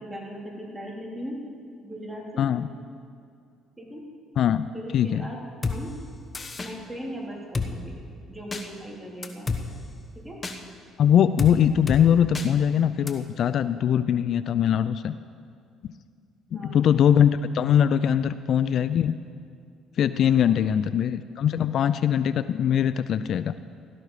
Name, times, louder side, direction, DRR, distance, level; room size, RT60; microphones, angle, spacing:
voice 1, 0.0-1.4 1.8-2.5 3.8-4.0 4.7-5.9 6.6-8.0 8.3-9.5 10.2-10.4 16.5-16.9 20.4-20.8, equal, 10° right, -2 dB, 3.5 m, -38 dB
voice 2, 2.4-2.7 4.4-4.7 4.9-5.3 11.0-15.1 15.8-15.9 16.5-19.1 20.0-23.5, left 9 dB, 60° left, 14 dB, 0.4 m, -22 dB
Drum kit, 5.6-5.8 6.3-6.7 7.5-7.7 8.5-8.6 9.2-9.6 10.4-10.6 11.4-11.5 11.9-12.0 12.3-12.5 13.1-13.2, left 4 dB, 30° left, 1.2 m, -28 dB
16.5 x 13.0 x 4.9 m, 2.3 s
cardioid pair, 95°, 0 cm